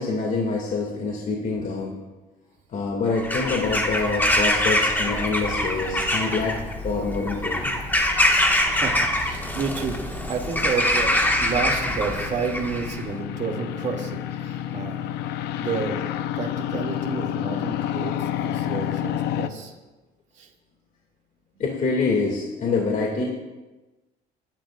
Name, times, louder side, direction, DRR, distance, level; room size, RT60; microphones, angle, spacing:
voice 1, 0.0-1.9 2.7-7.7 21.6-23.2, left 4 dB, 50° left, -1 dB, 2.4 m, -26 dB
Bird vocalization bird call bird song / Crow, 3.2-13.0, left 1 dB, 10° left, 1.6 m, -24 dB
sound 1, 5.0-19.5, left 11 dB, 80° left, 0.7 m, -32 dB
voice 2, 8.7-14.9 15.6-16.0 16.4-19.7 20.4-20.5, right 5 dB, 45° right, 1 dB, 2.6 m, -30 dB
28.5 x 12.0 x 2.5 m, 1.1 s
cardioid pair, 110°, 17 cm